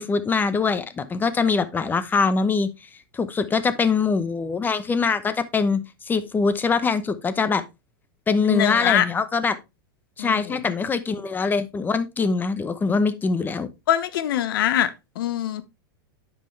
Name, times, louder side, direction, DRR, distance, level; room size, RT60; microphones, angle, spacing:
voice 1, 0.0-2.7 3.1-7.6 8.3-9.6 10.2-13.7, left 4 dB, 15° left, 0.9 m, -23 dB
voice 2, 8.4-9.1 10.2-10.6 13.9-15.6, left 11 dB, 70° left, 1.1 m, -23 dB
9.7 x 5.8 x 3.2 m
hypercardioid pair, 125°, 12 cm